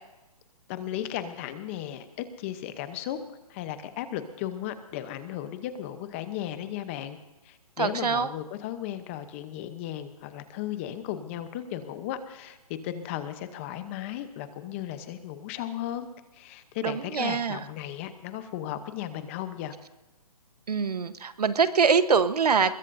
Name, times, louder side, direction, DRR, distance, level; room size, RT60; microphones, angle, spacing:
voice 1, 0.7-3.2 3.5-7.2 7.4-19.7, left 11 dB, 20° left, 11 dB, 0.8 m, -35 dB
voice 2, 7.8-8.3 16.8-17.6 20.7-22.8, right 5 dB, 85° right, 12 dB, 1.2 m, -24 dB
23.0 x 21.5 x 2.7 m, 1.0 s
hypercardioid pair, 160°, 19 cm